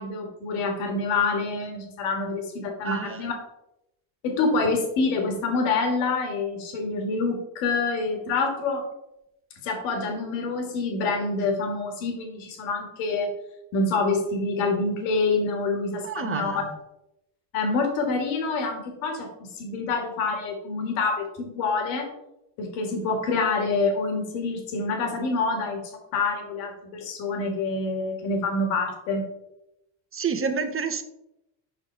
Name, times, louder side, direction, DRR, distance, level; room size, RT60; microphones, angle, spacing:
voice 1, 0.0-3.3 4.2-8.8 9.6-13.3 13.7-16.6 17.5-19.3 19.5-22.1 22.6-25.8 26.1-29.2, left 3 dB, 85° left, 1.9 m, -26 dB
voice 2, 2.8-3.3 16.0-16.7 30.1-31.0, right 5 dB, 25° right, 1.0 m, -29 dB
6.2 x 5.4 x 4.4 m
supercardioid pair, 75°, 47 cm